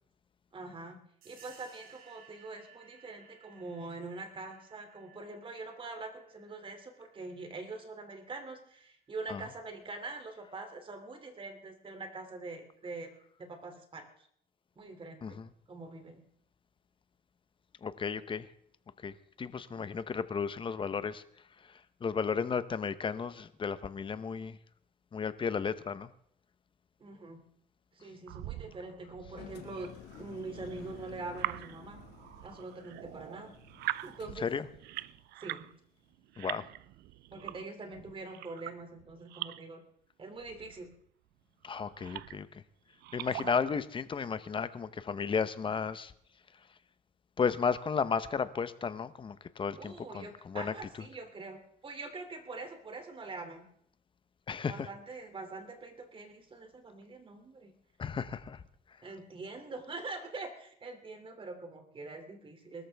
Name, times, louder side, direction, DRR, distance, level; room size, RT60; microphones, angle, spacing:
voice 1, 0.5-13.1 13.4-14.3 14.8-15.4 15.7-16.2 27.0-27.5 27.9-29.9 30.2-32.0 32.4-33.5 34.0-34.5 35.4-35.7 37.3-39.8 40.2-40.9 49.8-53.6 54.6-57.7 59.0-62.9, right 3 dB, 30° right, 6 dB, 2.9 m, -44 dB
sound 1, 1.2-9.5, right 7 dB, 60° right, 3.7 m, -60 dB
voice 2, 15.2-15.5 17.8-18.5 19.0-21.2 21.6-24.6 25.1-26.1 34.4-34.7 36.4-36.7 41.6-42.6 43.1-46.1 47.4-51.1 54.5-54.9 58.0-58.6, left 6 dB, 30° left, 13 dB, 0.9 m, -34 dB
sound 2, 28.3-35.7 36.1-39.7 40.4-41.0 41.6-42.5 42.9-43.8, right 16 dB, 80° right, 0.5 m, -43 dB
Engine, 29.3-35.1, left 9 dB, 85° left, 2.0 m, -53 dB
22.0 x 13.5 x 3.5 m, 0.69 s
cardioid pair, 110°, 17 cm